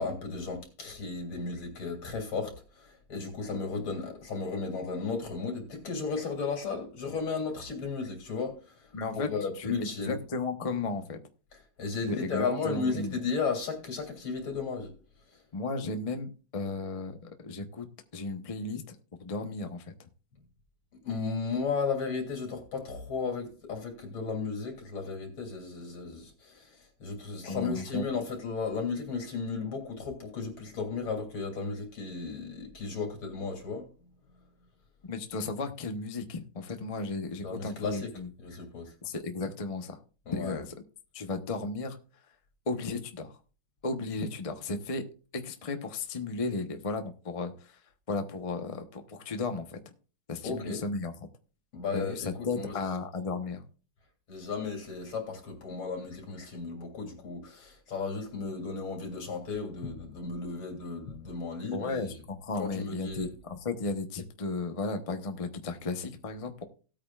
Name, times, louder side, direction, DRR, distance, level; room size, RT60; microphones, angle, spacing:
voice 1, 0.0-10.2 11.5-14.9 15.3-15.4 21.0-33.9 37.4-38.1 38.4-38.9 40.3-40.6 50.4-50.8 51.7-52.9 54.3-62.2 62.6-63.3, left 4 dB, 70° left, 3.7 m, -34 dB
voice 2, 8.9-9.3 9.6-11.2 12.1-13.2 15.5-17.9 18.1-18.9 19.2-20.1 27.5-28.0 35.1-38.3 39.0-40.0 40.3-40.7 41.1-42.0 42.7-43.3 43.8-45.0 45.3-47.8 48.1-49.8 50.3-51.1 51.9-53.6 61.7-66.6, left 3 dB, 40° left, 0.4 m, -34 dB
18.0 x 8.8 x 2.4 m
omnidirectional pair, 2.4 m